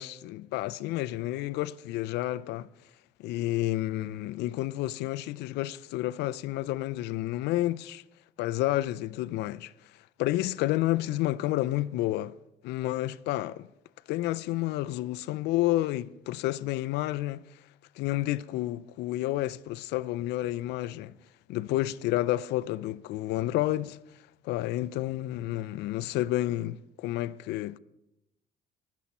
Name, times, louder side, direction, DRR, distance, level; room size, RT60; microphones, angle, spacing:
voice 1, 0.0-2.7 3.2-8.0 8.4-9.7 10.2-12.3 12.6-13.7 14.1-17.4 18.0-21.1 21.5-24.0 24.4-27.8, left 16 dB, 85° left, 0.4 m, -30 dB
20.0 x 7.2 x 4.2 m
cardioid pair, 110°, 17 cm